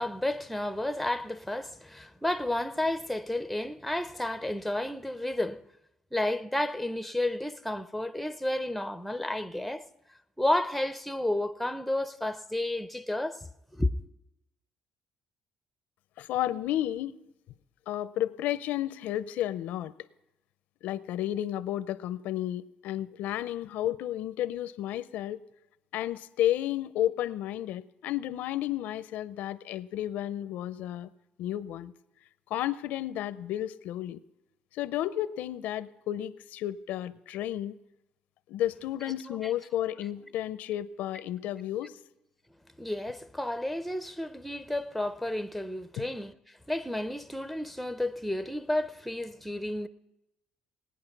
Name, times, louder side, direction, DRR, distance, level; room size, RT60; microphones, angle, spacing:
voice 1, 0.0-5.6 6.1-9.9 10.4-13.5 13.7-13.9 42.8-46.3 46.7-49.9, left 1 dB, ahead, 0.5 m, -31 dB
voice 2, 16.2-17.1 17.9-19.9 20.8-25.4 25.9-31.1 31.4-31.9 32.5-34.2 34.8-37.8 38.5-41.9, left 12 dB, 80° left, 0.5 m, -32 dB
19.5 x 9.4 x 5.9 m
cardioid pair, 140°, 3 cm